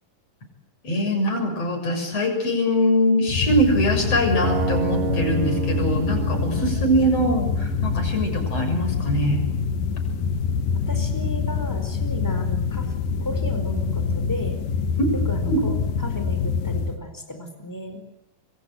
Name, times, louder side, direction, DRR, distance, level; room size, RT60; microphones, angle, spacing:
voice 1, 0.8-9.4 15.0-15.2 15.5-15.6, equal, 45° left, 4 dB, 7.8 m, -22 dB
sound 1, 3.3-17.0, left 5 dB, 85° left, 3.2 m, -25 dB
sound 2, 4.4-10.4, right 6 dB, 45° right, 2.7 m, -32 dB
voice 2, 10.9-12.9 13.2-14.6 15.2-18.0, left 1 dB, 5° left, 7 dB, 4.4 m, -34 dB
27.0 x 24.0 x 8.0 m, 0.81 s
omnidirectional pair, 3.8 m